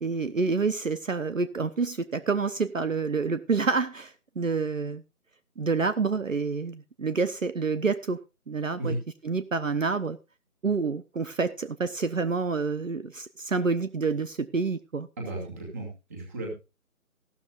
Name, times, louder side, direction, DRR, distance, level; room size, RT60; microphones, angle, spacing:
voice 1, 0.0-5.0 5.6-8.2 8.5-9.0 9.2-10.2 10.6-15.1, right 4 dB, 60° right, 1.1 m, -28 dB
voice 2, 15.2-16.5, right 1 dB, 10° right, 2.5 m, -34 dB
15.5 x 12.5 x 2.5 m
figure-of-eight pair, 170°, 44 cm